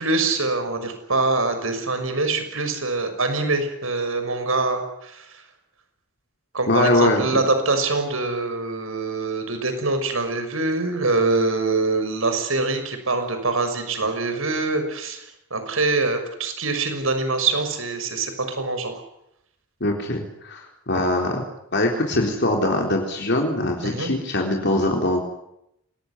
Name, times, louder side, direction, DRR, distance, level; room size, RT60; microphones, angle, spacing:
voice 1, 0.0-5.4 6.5-15.2 15.5-19.0 23.8-24.1, right 3 dB, 75° right, 8 dB, 6.1 m, -24 dB
voice 2, 6.7-7.4 19.8-20.6 20.9-21.4 21.7-25.2, left 1 dB, 55° left, 1 dB, 3.8 m, -22 dB
26.5 x 19.5 x 9.9 m, 0.81 s
head